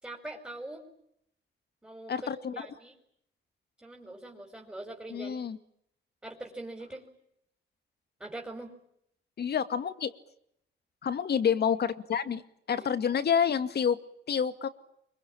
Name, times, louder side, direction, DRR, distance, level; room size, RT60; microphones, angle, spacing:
voice 1, 0.0-0.9 1.8-2.9 3.8-5.4 6.2-7.1 8.2-8.7 12.8-12.9, right 2 dB, 5° right, 2 dB, 5.2 m, -43 dB
voice 2, 2.1-2.5 5.1-5.6 9.4-10.1 11.0-12.4 12.7-14.0 14.3-14.7, left 7 dB, 55° left, 11 dB, 2.3 m, -28 dB
25.5 x 24.0 x 8.9 m, 0.73 s
cardioid pair, 90°, 20 cm